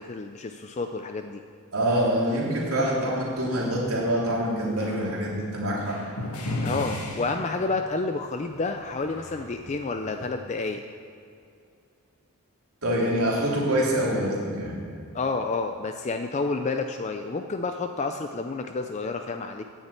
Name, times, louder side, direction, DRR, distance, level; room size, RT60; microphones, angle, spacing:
voice 1, 0.0-1.4 6.6-10.8 15.1-19.6, left 3 dB, 30° left, 6 dB, 0.4 m, -30 dB
voice 2, 1.7-6.0 12.8-14.7, right 1 dB, 75° right, -4 dB, 3.2 m, -25 dB
sound 1, 4.8-5.1 5.8-8.0 8.3-10.3, left 1 dB, 80° left, 1.7 m, -35 dB
9.7 x 7.2 x 8.3 m, 2.4 s
head